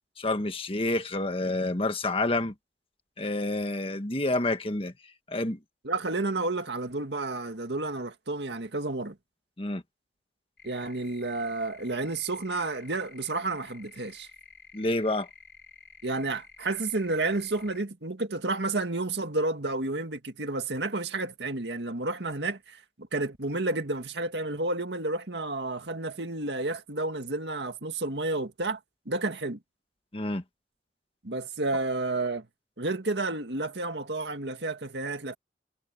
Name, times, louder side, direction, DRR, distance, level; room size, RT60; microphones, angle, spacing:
voice 1, 0.2-2.5 3.2-4.9 5.3-5.6 9.6-9.8 14.7-15.3 30.1-30.4, left 2 dB, 30° left, 1.5 m, -28 dB
voice 2, 5.8-9.2 10.6-14.3 16.0-22.8 23.1-28.8 29.1-29.6 31.2-32.5 32.8-35.3, right 2 dB, 75° right, 2.0 m, -31 dB
sound 1, 10.6-17.8, left 4 dB, 70° left, 5.0 m, -52 dB
head